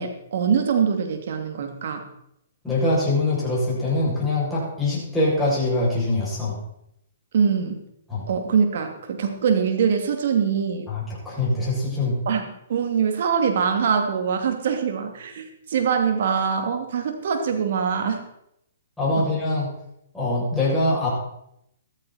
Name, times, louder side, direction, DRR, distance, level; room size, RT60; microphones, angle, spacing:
voice 1, 0.0-2.0 7.3-7.8 8.3-10.9 12.3-18.3 19.2-19.3, right 6 dB, 60° right, 5 dB, 2.7 m, -23 dB
voice 2, 2.6-6.6 8.1-8.3 10.9-12.2 19.0-19.7 20.1-21.1, left 2 dB, 5° left, -8 dB, 7.5 m, -23 dB
14.0 x 14.0 x 4.4 m, 0.77 s
hypercardioid pair, 135°, 0 cm